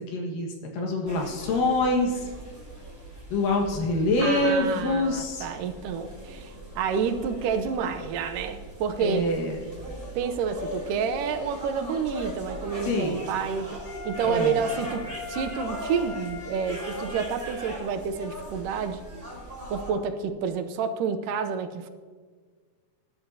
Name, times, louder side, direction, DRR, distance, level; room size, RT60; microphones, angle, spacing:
voice 1, 0.0-2.3 3.3-5.5 9.0-9.6 12.9-13.2 14.2-14.6, left 2 dB, 90° left, 1 dB, 3.3 m, -25 dB
sound 1, 1.1-19.9, equal, 5° right, 3.5 m, -40 dB
voice 2, 4.2-9.3 10.2-19.0 19.7-21.9, right 6 dB, 90° right, 9 dB, 2.4 m, -29 dB
Wind instrument woodwind instrument, 13.8-17.6, left 3 dB, 55° left, 2.0 m, -40 dB
20.0 x 11.0 x 2.8 m, 1.6 s
omnidirectional pair, 3.8 m